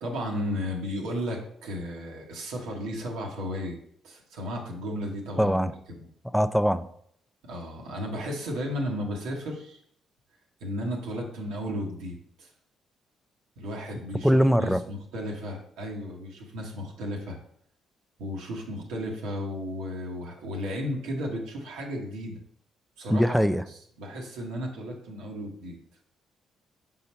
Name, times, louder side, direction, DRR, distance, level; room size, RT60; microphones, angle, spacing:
voice 1, 0.0-3.8 4.0-5.5 5.9-6.1 7.5-9.8 10.6-12.5 13.6-14.3 14.6-17.4 18.2-22.4 23.0-23.4 24.0-25.8, equal, 90° right, 0 dB, 1.2 m, -34 dB
voice 2, 5.4-5.7 6.3-6.9 14.2-14.8 23.1-23.6, equal, ahead, 12 dB, 0.4 m, -22 dB
5.5 x 3.9 x 4.4 m, 0.65 s
supercardioid pair, 75°, 0 cm